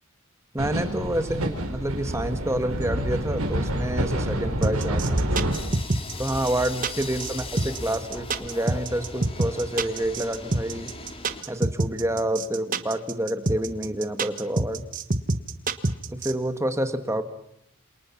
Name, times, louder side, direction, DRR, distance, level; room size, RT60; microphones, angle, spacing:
voice 1, 0.5-5.5 6.2-10.9 11.5-14.9 16.1-17.2, right 1 dB, 15° right, 9 dB, 1.5 m, -28 dB
sound 1, 0.6-5.6, right 1 dB, 75° right, 4.4 m, -27 dB
sound 2, 4.6-16.3, right 2 dB, 40° right, 1.3 m, -26 dB
sound 3, 5.5-11.4, left 2 dB, 25° left, 2.3 m, -38 dB
28.0 x 27.5 x 5.9 m, 0.76 s
head